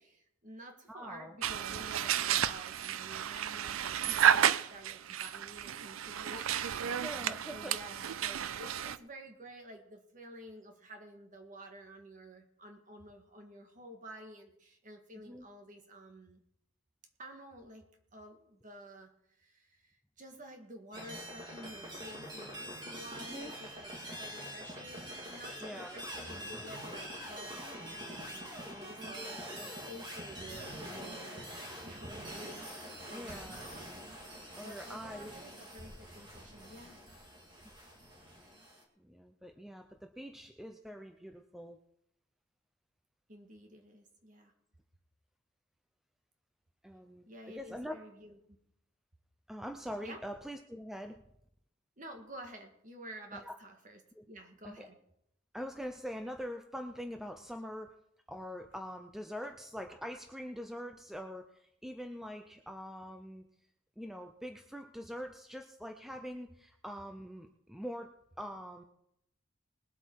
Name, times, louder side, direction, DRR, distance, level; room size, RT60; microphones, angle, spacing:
voice 1, 0.0-16.4 17.2-17.9 18.1-31.5 31.8-32.6 32.8-33.9 34.1-37.0 43.3-44.5 47.3-48.6 50.0-50.2 52.0-54.0 54.3-55.0, right 1 dB, 40° right, 4 dB, 1.9 m, -51 dB
voice 2, 0.9-1.3 7.0-7.7 15.2-15.5 23.3-23.5 25.5-26.0 33.1-33.6 34.6-35.3 39.0-41.8 46.8-47.9 49.5-51.2 53.3-53.5 54.2-54.3 54.6-54.9 55.5-57.9 58.3-63.4 64.0-68.8, equal, ahead, 5 dB, 0.5 m, -44 dB
sound 1, 1.4-9.0, right 9 dB, 85° right, 0.5 m, -32 dB
sound 2, 20.9-38.8, equal, 20° right, 2.2 m, -45 dB
20.5 x 7.9 x 4.7 m, 0.77 s
head